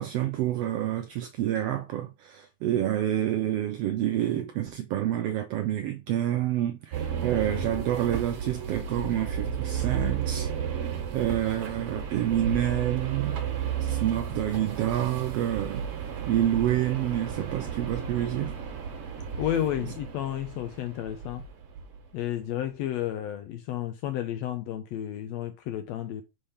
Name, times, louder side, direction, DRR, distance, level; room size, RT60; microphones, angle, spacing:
voice 1, 0.0-10.5 10.7-13.4 13.8-15.9 16.3-18.6 19.8-19.9, right 12 dB, 90° right, 1.3 m, -28 dB
sound 1, 6.9-22.1, right 7 dB, 55° right, 1.9 m, -33 dB
voice 2, 19.4-21.4 22.1-26.2, left 11 dB, 80° left, 1.6 m, -31 dB
5.5 x 3.4 x 5.6 m
omnidirectional pair, 3.4 m